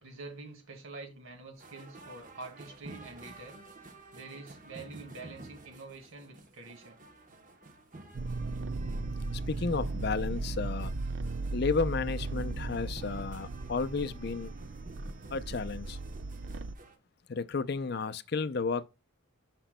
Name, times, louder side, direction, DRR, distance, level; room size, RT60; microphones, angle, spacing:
voice 1, 0.0-3.6 4.1-7.0, right 3 dB, 75° right, 2.1 m, -46 dB
sound 1, 1.5-17.0, right 2 dB, 40° right, 1.0 m, -52 dB
sound 2, 8.1-16.7, right 3 dB, 60° right, 0.5 m, -36 dB
voice 2, 9.3-10.9 11.5-14.5 15.3-16.0 17.3-18.8, left 4 dB, 50° left, 0.5 m, -32 dB
10.0 x 6.0 x 2.2 m
head